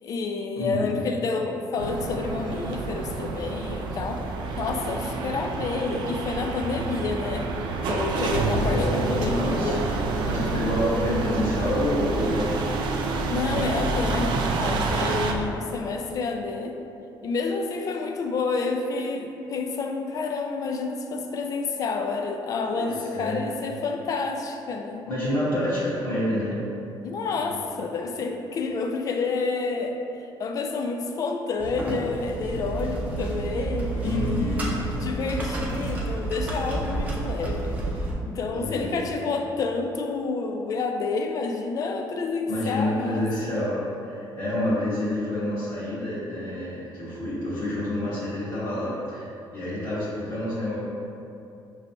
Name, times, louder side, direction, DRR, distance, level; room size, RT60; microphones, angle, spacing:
voice 1, 0.0-4.2 4.6-7.5 7.8-9.9 13.3-16.7 17.2-25.1 27.0-30.0 30.4-37.8 38.3-43.5, left 4 dB, 45° left, 4 dB, 0.4 m, -29 dB
voice 2, 0.5-1.0 8.7-9.9 10.3-12.7 14.9-15.4 22.7-23.4 25.1-26.6 27.4-27.8 34.0-34.7 38.5-38.9 42.5-50.8, left 1 dB, 60° left, -12 dB, 1.4 m, -28 dB
sound 1, 1.8-15.3, right 3 dB, 65° right, 0.4 m, -28 dB
sound 2, 31.6-38.1, right 2 dB, 20° right, 0.6 m, -30 dB
5.2 x 3.1 x 2.7 m, 2.7 s
cardioid pair, 155°, 8 cm